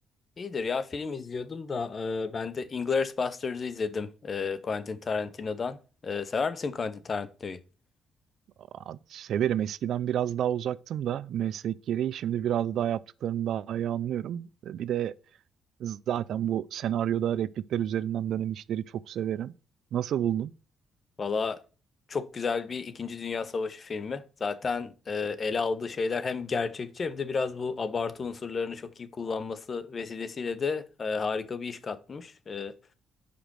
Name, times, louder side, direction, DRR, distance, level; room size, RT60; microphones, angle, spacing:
voice 1, 0.4-7.6 21.2-21.6 22.1-32.7, left 5 dB, 40° left, 0.7 m, -32 dB
voice 2, 8.7-15.1 15.8-19.5 19.9-20.5, right 10 dB, 70° right, 0.3 m, -30 dB
5.1 x 5.0 x 6.0 m
cardioid pair, 90°, 0 cm